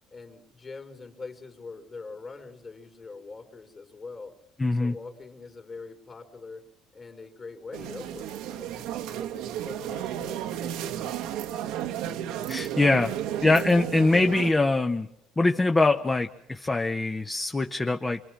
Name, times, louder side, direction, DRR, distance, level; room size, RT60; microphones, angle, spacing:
voice 1, 0.1-4.4 4.7-6.7 6.9-11.0, left 4 dB, 35° left, 6 dB, 3.5 m, -43 dB
voice 2, 4.6-4.9 12.5-13.1 13.4-15.1 15.4-18.2, left 2 dB, 20° left, 6 dB, 1.0 m, -23 dB
sound 1, 7.7-14.5, right 11 dB, 80° right, 1.2 m, -33 dB
25.5 x 23.0 x 6.0 m, 0.77 s
supercardioid pair, 80°, 0 cm